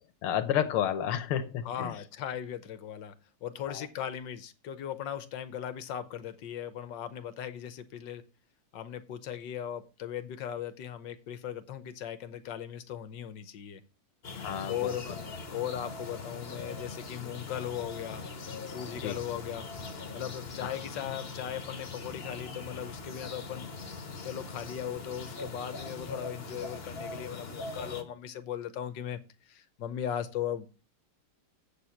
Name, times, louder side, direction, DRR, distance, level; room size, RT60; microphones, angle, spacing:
voice 1, 0.2-1.9 3.7-3.9 14.4-14.9 19.0-19.2 20.6-20.8, left 10 dB, 90° left, 8 dB, 1.7 m, -31 dB
voice 2, 1.6-3.1 3.4-8.2 8.7-13.8 14.7-18.3 18.6-19.7 20.1-23.7 24.2-29.2 29.4-30.7, left 10 dB, 65° left, 11 dB, 1.4 m, -38 dB
sound 1, 14.2-28.0, left 3 dB, 35° left, 1.2 m, -41 dB
7.9 x 6.8 x 5.7 m, 0.32 s
omnidirectional pair, 2.3 m